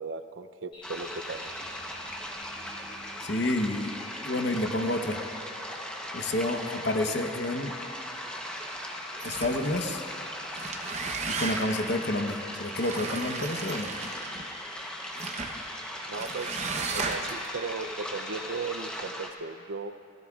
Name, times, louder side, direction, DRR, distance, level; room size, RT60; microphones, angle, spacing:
voice 1, 0.0-1.5 16.1-19.9, right 4 dB, 90° right, 9 dB, 0.6 m, -37 dB
sound 1, 0.7-18.9, left 1 dB, 30° left, 4.3 m, -46 dB
sound 2, 0.8-19.3, equal, 5° left, 0.9 m, -39 dB
voice 2, 3.2-3.9 4.2-5.2 6.1-7.7 9.2-10.0 11.3-13.9, left 1 dB, 60° left, 5 dB, 1.0 m, -29 dB
sound 3, 9.2-9.8 10.4-11.9 12.7-14.5 15.1-15.6 16.1-17.5, right 4 dB, 35° right, 0.9 m, -35 dB
29.0 x 15.0 x 2.4 m, 2.6 s
head